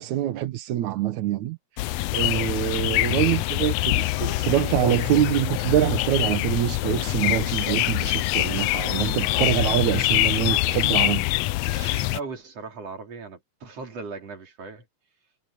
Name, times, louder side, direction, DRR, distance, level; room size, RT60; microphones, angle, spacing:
voice 1, 0.0-11.3, right 12 dB, 80° right, 2.5 m, -25 dB
sound 1, 1.8-12.2, left 18 dB, 80° left, 1.5 m, -24 dB
voice 2, 2.9-3.5 11.6-14.8, right 4 dB, 55° right, 4.6 m, -38 dB
omnidirectional pair, 3.3 m